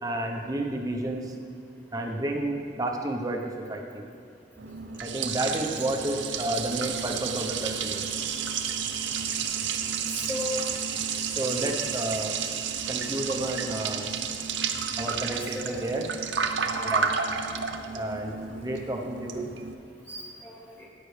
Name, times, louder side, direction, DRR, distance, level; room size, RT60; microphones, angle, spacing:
voice 1, 0.0-1.3 1.9-4.0 5.0-8.0 11.4-12.4 12.9-14.1 15.0-16.1 16.8-17.1 17.9-18.3 18.6-19.5, right 1 dB, 20° right, 2 dB, 0.8 m, -31 dB
Liquid, 4.6-19.7, right 6 dB, 90° right, 0.7 m, -31 dB
voice 2, 10.1-10.6 15.3-15.8 16.7-17.2 18.7-18.9 20.1-20.9, left 1 dB, 10° left, -5 dB, 2.2 m, -37 dB
13.0 x 9.0 x 3.3 m, 2.4 s
head